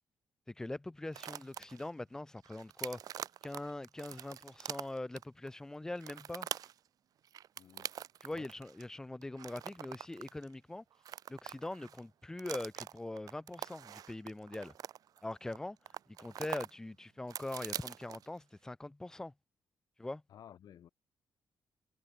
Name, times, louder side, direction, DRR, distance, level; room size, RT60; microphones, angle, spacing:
voice 1, 0.5-6.5 8.2-10.8 11.3-14.7 15.2-15.8 16.1-19.3 20.0-20.2, left 2 dB, 10° left, 0.4 m, -42 dB
sound 1, 1.1-1.9 2.4-5.5 6.0-6.8 7.3-8.8 9.2-10.5 10.9-12.0 12.4-15.6 15.9-16.7 17.0-18.4, right 10 dB, 60° right, 0.6 m, -44 dB
voice 2, 7.6-7.9 8.3-8.5 20.3-20.9, left 10 dB, 70° left, 4.2 m, -55 dB
wide cardioid pair, 160°, 7 cm